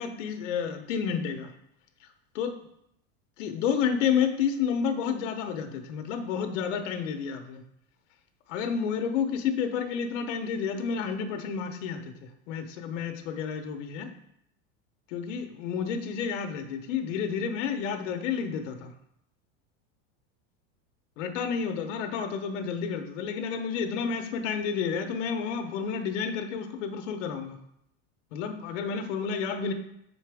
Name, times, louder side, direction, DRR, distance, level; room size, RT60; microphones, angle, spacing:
voice 1, 0.0-1.5 2.3-2.5 3.4-7.6 8.5-14.1 15.1-18.9 21.2-27.6 28.3-29.7, left 6 dB, 80° left, 6 dB, 1.0 m, -30 dB
6.6 x 4.4 x 3.5 m, 0.77 s
supercardioid pair, 160°, 37 cm